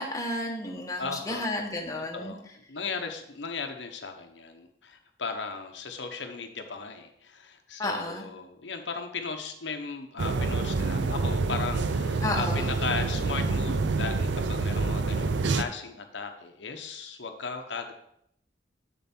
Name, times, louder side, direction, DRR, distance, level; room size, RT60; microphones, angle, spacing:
voice 1, 0.0-2.4 7.8-8.3 12.2-12.7, left 1 dB, 20° left, 0 dB, 1.1 m, -32 dB
voice 2, 1.0-1.5 2.1-2.4 2.7-17.9, left 5 dB, 85° left, 5 dB, 0.9 m, -36 dB
sound 1, 10.2-15.6, right 3 dB, 80° right, 0.5 m, -27 dB
7.2 x 7.0 x 4.4 m, 0.73 s
head